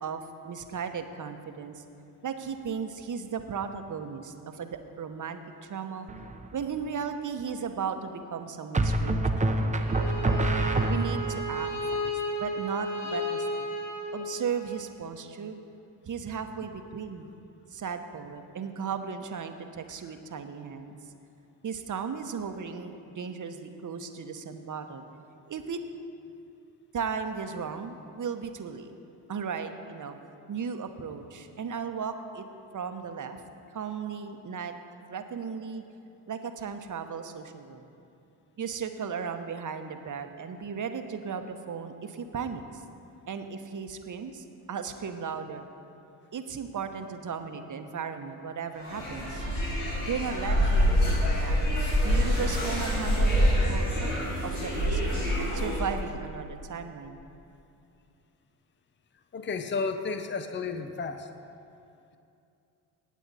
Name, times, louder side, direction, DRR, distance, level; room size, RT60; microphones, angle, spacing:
voice 1, 0.0-1.8 2.2-6.1 6.5-10.3 10.9-13.7 14.1-15.6 16.0-17.3 17.7-20.9 21.6-25.0 25.5-25.9 26.9-28.9 29.3-30.1 30.5-32.5 32.7-33.4 33.7-34.7 35.1-35.8 36.3-37.8 38.6-42.8 43.3-45.7 46.3-49.5 50.1-51.6 52.0-54.1 54.4-55.2 55.5-57.3, right 6 dB, 40° right, 7 dB, 1.1 m, -36 dB
sound 1, 6.1-6.6 8.7-11.4, right 1 dB, 15° right, 0.9 m, -26 dB
Bowed string instrument, 9.8-14.8, equal, 65° left, 2.0 m, -33 dB
sound 2, 48.8-56.0, equal, 85° left, 3.4 m, -26 dB
voice 2, 59.3-61.3, left 4 dB, 25° left, 8 dB, 0.8 m, -32 dB
19.0 x 8.3 x 4.2 m, 2.6 s
hypercardioid pair, 50°, 48 cm